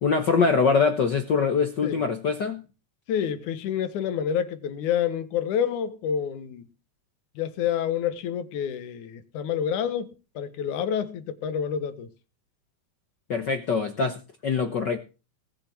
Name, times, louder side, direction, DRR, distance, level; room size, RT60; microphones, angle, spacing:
voice 1, 0.0-2.6 13.3-15.0, left 5 dB, 60° left, 1.1 m, -23 dB
voice 2, 3.1-6.7 7.4-12.1, left 8 dB, 80° left, 2.7 m, -28 dB
19.0 x 7.1 x 6.1 m
omnidirectional pair, 3.5 m